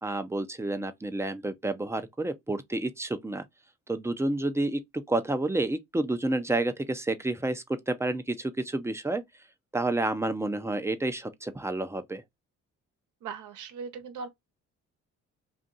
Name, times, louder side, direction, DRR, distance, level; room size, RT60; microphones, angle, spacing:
voice 1, 0.0-3.4 3.9-9.2 9.7-12.2, right 2 dB, 10° right, 0.5 m, -30 dB
voice 2, 13.2-14.3, right 5 dB, 80° right, 0.9 m, -39 dB
2.6 x 2.5 x 3.8 m
cardioid pair, 90°, 30 cm